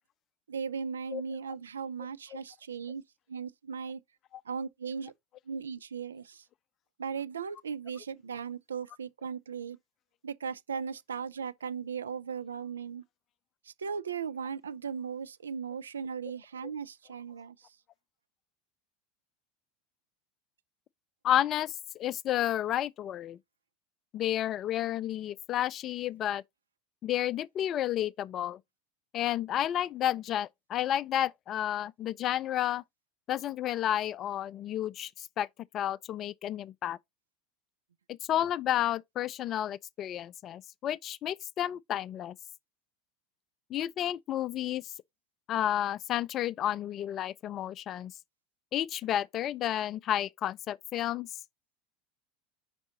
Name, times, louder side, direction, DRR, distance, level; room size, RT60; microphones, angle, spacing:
voice 1, 0.5-3.0 3.3-4.0 4.5-5.1 5.5-6.4 7.0-9.8 10.2-13.0 13.6-17.7, right 6 dB, 75° right, 0.5 m, -37 dB
voice 2, 21.2-23.4 24.1-26.4 27.0-28.6 29.1-32.8 33.3-35.5 35.7-37.0 38.3-42.4 43.7-44.9 45.5-48.1 48.7-51.3, left 11 dB, 40° left, 0.4 m, -31 dB
5.2 x 4.9 x 4.0 m
figure-of-eight pair, 80°, 0 cm